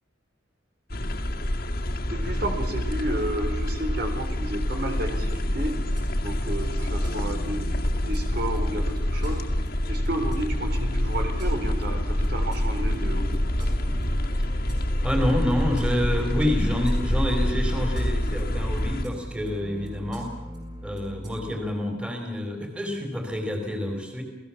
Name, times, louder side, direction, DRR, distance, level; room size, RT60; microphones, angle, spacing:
sound 1, 0.9-19.0, left 1 dB, 55° left, 2.2 m, -26 dB
voice 1, 2.0-5.8 6.2-9.4 9.9-13.4, right 1 dB, 55° right, 5 dB, 3.6 m, -32 dB
sound 2, 5.1-21.5, equal, 25° right, 7.2 m, -41 dB
voice 2, 15.0-20.3 20.8-24.2, left 1 dB, 5° right, 4 dB, 3.7 m, -28 dB
28.5 x 18.0 x 7.1 m, 0.97 s
head